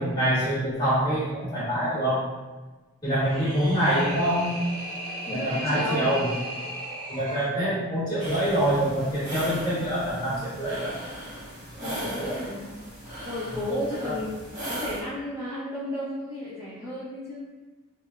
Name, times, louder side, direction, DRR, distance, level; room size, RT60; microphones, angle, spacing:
voice 1, 0.0-2.2 3.0-4.5 5.3-6.3 7.1-10.9 11.8-12.4 13.7-14.1, right 1 dB, 20° left, -11 dB, 1.3 m, -26 dB
sound 1, 3.0-7.5, right 1 dB, 85° right, 0.9 m, -36 dB
voice 2, 5.3-6.1 11.8-12.7 13.2-17.4, left 1 dB, 15° right, -12 dB, 0.7 m, -33 dB
sound 2, 8.2-15.0, equal, 40° right, 1.1 m, -37 dB
3.4 x 3.1 x 2.3 m, 1.2 s
head